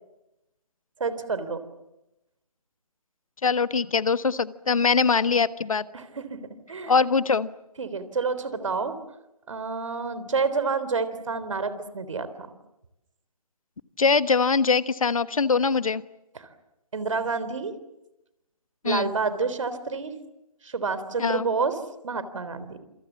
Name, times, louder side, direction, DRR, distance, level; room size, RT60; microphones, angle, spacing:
voice 1, 1.0-1.6 5.9-6.4 6.7-6.9 7.8-9.0 9.5-12.5 16.3-16.5 16.9-17.8 18.8-20.1 20.6-22.8, right 4 dB, 55° right, 12 dB, 3.6 m, -29 dB
voice 2, 3.4-5.8 6.9-7.5 14.0-16.0 18.8-19.1 21.2-21.5, left 5 dB, 60° left, 14 dB, 1.4 m, -22 dB
28.0 x 27.5 x 7.3 m, 0.93 s
figure-of-eight pair, 150°, 20 cm